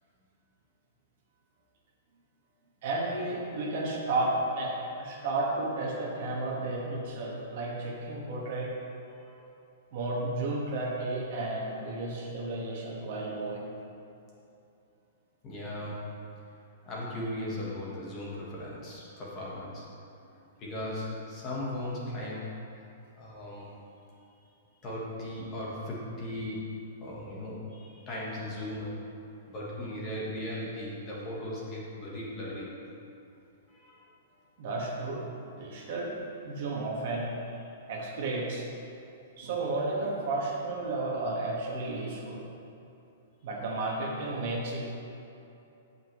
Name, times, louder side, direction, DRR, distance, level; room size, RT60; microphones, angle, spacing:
voice 1, 2.8-8.7 9.9-13.6 34.6-35.3 35.6-36.1 36.4-37.3 37.9-38.6 39.4-42.4 43.4-44.8, right 2 dB, 40° right, -3 dB, 1.6 m, -32 dB
voice 2, 9.1-9.5 15.4-16.3 16.8-19.9 20.4-22.9 23.1-23.8 24.8-29.0 29.5-32.8 33.7-34.1, left 1 dB, 20° left, -5 dB, 1.4 m, -38 dB
16.0 x 5.6 x 3.2 m, 2.8 s
hypercardioid pair, 175°, 0 cm